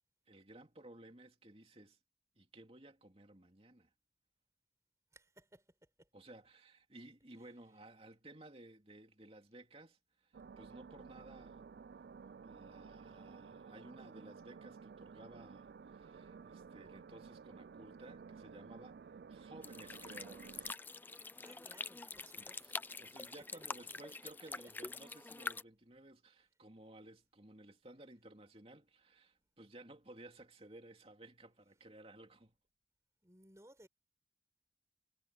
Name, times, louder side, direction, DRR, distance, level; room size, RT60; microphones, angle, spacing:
voice 1, 0.3-2.0 2.4-3.9 6.1-11.6 12.4-20.7 22.4-22.7 23.0-32.6, right 1 dB, 35° right, 2.7 m, -57 dB
voice 2, 5.1-6.1 7.4-7.5 21.4-22.6 24.2-24.5 33.2-33.9, right 1 dB, 15° right, 4.7 m, -62 dB
sound 1, 10.3-20.7, right 5 dB, 65° right, 0.4 m, -54 dB
sound 2, 19.6-25.6, left 3 dB, 10° left, 0.3 m, -46 dB
head